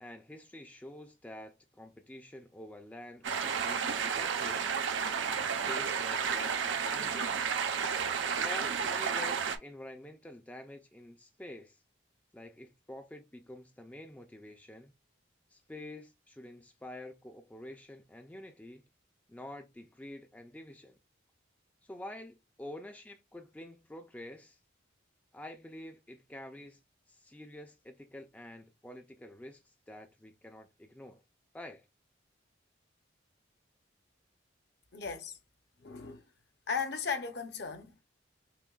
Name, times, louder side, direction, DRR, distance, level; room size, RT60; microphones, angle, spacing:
voice 1, 0.0-4.7 5.2-7.5 8.4-11.8 12.3-14.9 15.5-18.8 19.3-21.0 21.8-24.6 25.3-26.8 27.1-31.2 31.5-31.9, left 1 dB, 10° left, 0.3 m, -48 dB
sound 1, 3.2-9.6, right 6 dB, 70° right, 0.5 m, -32 dB
voice 2, 34.9-35.4 35.8-36.3 36.7-38.0, left 5 dB, 55° left, 0.6 m, -36 dB
5.8 x 2.2 x 2.3 m
head